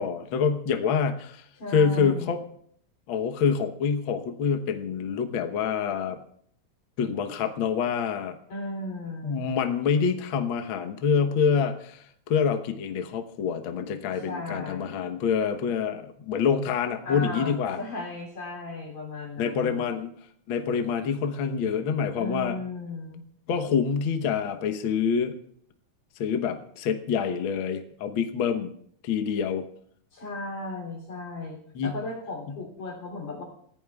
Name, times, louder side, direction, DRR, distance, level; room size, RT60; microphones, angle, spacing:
voice 1, 0.0-1.4 1.7-2.4 3.1-6.2 7.0-8.4 9.2-17.8 19.4-20.1 20.5-22.6 23.5-25.4 26.2-28.7 29.0-29.7 31.7-32.0, left 6 dB, 90° left, 6 dB, 1.1 m, -26 dB
voice 2, 1.6-2.4 8.5-9.4 14.1-15.0 17.0-19.8 22.2-23.2 30.1-31.6 31.8-33.4, left 2 dB, 65° left, -2 dB, 4.6 m, -36 dB
29.0 x 15.5 x 2.4 m, 0.66 s
omnidirectional pair, 4.0 m